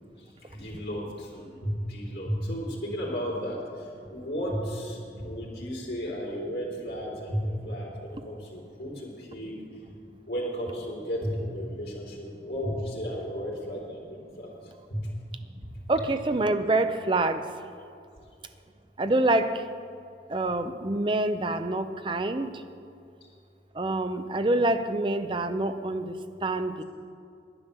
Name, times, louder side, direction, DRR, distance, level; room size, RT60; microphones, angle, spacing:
voice 1, 0.4-9.6 10.3-14.5 14.9-15.1, equal, 65° left, -4 dB, 3.4 m, -34 dB
voice 2, 15.9-17.4 19.0-19.6 20.3-22.5 23.8-26.1 26.4-26.8, right 2 dB, 30° right, 9 dB, 0.6 m, -26 dB
11.0 x 9.7 x 6.8 m, 2.4 s
head